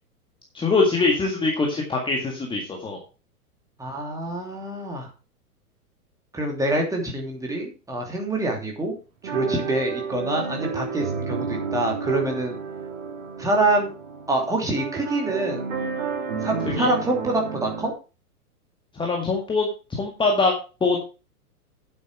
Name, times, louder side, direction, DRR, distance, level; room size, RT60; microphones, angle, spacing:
voice 1, 0.5-3.0 16.8-16.9 18.9-20.5 20.8-21.0, left 3 dB, 10° left, 1 dB, 1.8 m, -23 dB
voice 2, 3.8-5.1 6.3-8.9 9.2-12.6 13.4-13.9 14.3-15.6 16.4-17.9, right 2 dB, 5° right, 1 dB, 3.0 m, -26 dB
sound 1, 9.2-17.9, right 5 dB, 55° right, 3.1 m, -30 dB
9.4 x 8.1 x 4.6 m, 0.32 s
figure-of-eight pair, 105°, 46 cm